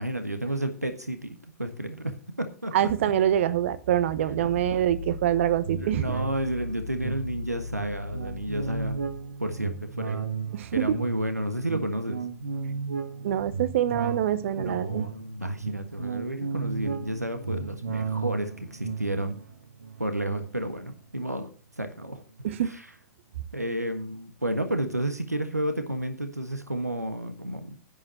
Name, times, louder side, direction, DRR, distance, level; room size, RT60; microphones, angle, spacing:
voice 1, 0.0-2.9 5.7-9.1 9.4-10.3 10.7-12.2 14.6-19.4 20.0-21.5 21.8-22.2 22.6-22.9 23.5-27.8, right 1 dB, 90° right, 7 dB, 1.4 m, -31 dB
voice 2, 2.7-6.0 10.5-11.0 13.2-15.1 22.4-22.7, right 11 dB, 55° right, 15 dB, 1.0 m, -25 dB
sound 1, 4.0-9.5, left 2 dB, 65° left, 0.9 m, -38 dB
sound 2, 5.6-21.4 21.8-21.9, right 5 dB, 70° right, 1.6 m, -35 dB
10.5 x 9.8 x 4.3 m, 0.39 s
figure-of-eight pair, 100°, 8 cm